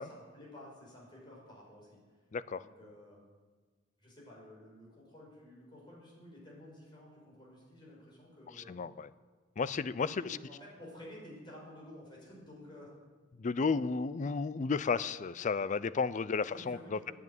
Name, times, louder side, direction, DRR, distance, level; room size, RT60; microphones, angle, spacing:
voice 1, 0.0-1.9 2.5-3.3 4.0-8.8 10.0-12.9 16.4-17.1, left 1 dB, 25° left, -4 dB, 5.4 m, -52 dB
voice 2, 2.3-2.7 8.7-9.1 9.6-10.2 13.4-17.1, left 4 dB, 40° left, 16 dB, 0.4 m, -33 dB
11.0 x 9.9 x 9.3 m, 1.4 s
head